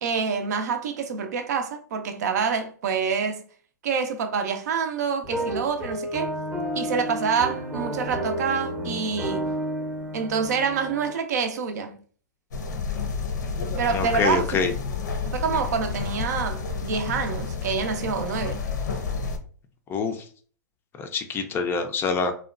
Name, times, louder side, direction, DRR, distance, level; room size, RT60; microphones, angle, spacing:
voice 1, 0.0-3.4 3.8-6.3 6.8-9.5 10.1-12.0 13.7-14.5 15.2-18.6, right 6 dB, 65° right, 0.5 m, -27 dB
sound 1, 5.2-11.1, right 1 dB, 15° right, 0.7 m, -31 dB
sound 2, 12.5-19.4, left 4 dB, 80° left, 0.6 m, -30 dB
voice 2, 13.9-14.7 19.9-20.3 21.0-22.3, left 4 dB, 25° left, 0.4 m, -25 dB
2.8 x 2.2 x 2.4 m
hypercardioid pair, 110°, 10 cm